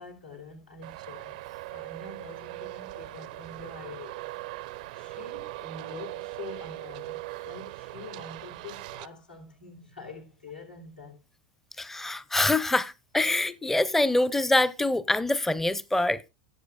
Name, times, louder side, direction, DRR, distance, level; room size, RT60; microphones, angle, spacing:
voice 1, 0.0-1.4 1.7-4.3 4.9-11.2, left 4 dB, 85° left, 2.9 m, -45 dB
Traffic noise roadway noise, 0.8-9.1, right 18 dB, 55° right, 0.4 m, -40 dB
voice 2, 11.8-16.2, left 2 dB, 5° left, 0.5 m, -25 dB
16.5 x 8.0 x 2.3 m
figure-of-eight pair, 80°, 5 cm